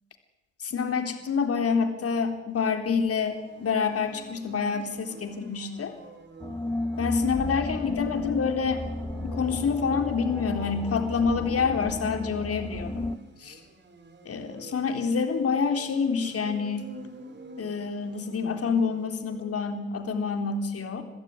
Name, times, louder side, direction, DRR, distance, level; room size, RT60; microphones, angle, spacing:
voice 1, 0.6-5.9 7.0-8.8 9.2-13.1 13.4-13.6 14.3-16.9 17.6-21.0, left 5 dB, 50° left, 7 dB, 3.7 m, -27 dB
sound 1, 3.1-19.7, right 2 dB, 35° right, 4.7 m, -48 dB
sound 2, 6.4-13.2, left 1 dB, 10° left, 1.0 m, -34 dB
27.0 x 15.5 x 9.7 m, 0.98 s
cardioid pair, 90°, 30 cm